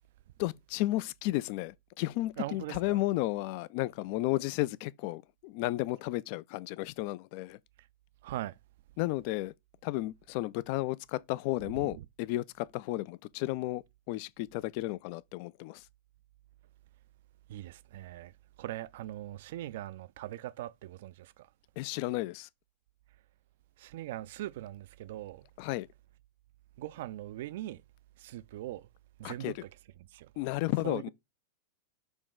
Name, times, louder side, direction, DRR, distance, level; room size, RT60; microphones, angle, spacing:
voice 1, 0.4-7.6 9.0-9.5 9.8-15.9 21.8-22.5 25.6-25.9 29.2-29.5 30.4-31.1, left 18 dB, 45° left, 0.3 m, -33 dB
voice 2, 2.4-3.0 7.8-7.9 8.2-8.6 11.6-12.1 17.5-18.3 18.6-21.5 23.8-25.5 26.8-27.8 28.2-28.9 29.2-29.6 30.0-30.3 30.8-31.1, right 14 dB, 55° right, 0.3 m, -41 dB
6.3 x 3.0 x 5.0 m
figure-of-eight pair, 90°, 0 cm